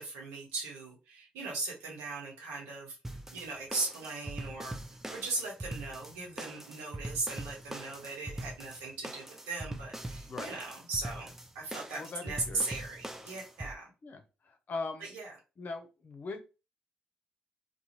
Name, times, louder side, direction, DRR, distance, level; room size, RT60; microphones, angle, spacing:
voice 1, 0.0-3.0 3.3-4.8 5.1-13.9 15.0-15.3, right 3 dB, 80° right, -2 dB, 1.0 m, -38 dB
sound 1, 3.0-13.7, right 1 dB, 10° right, 0.5 m, -42 dB
voice 2, 12.0-12.6 14.0-15.1 15.6-16.4, left 3 dB, 50° left, 6 dB, 0.7 m, -40 dB
2.5 x 2.3 x 2.9 m, 0.30 s
hypercardioid pair, 45°, 4 cm